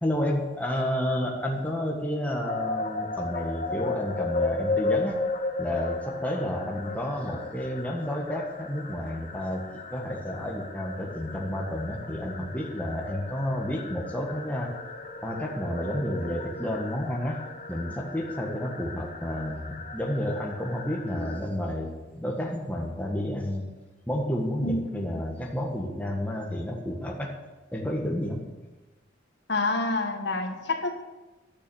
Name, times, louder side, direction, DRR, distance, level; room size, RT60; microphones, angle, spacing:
voice 1, 0.0-5.2 5.6-14.8 15.2-17.4 17.7-23.7 24.1-27.4 27.7-28.5, left 1 dB, 10° left, -1 dB, 1.5 m, -30 dB
sound 1, 2.4-21.4, left 3 dB, 45° left, 1.3 m, -35 dB
voice 2, 24.6-25.1 29.5-30.9, left 2 dB, 65° left, 4 dB, 1.7 m, -28 dB
11.5 x 9.9 x 7.1 m, 1.1 s
head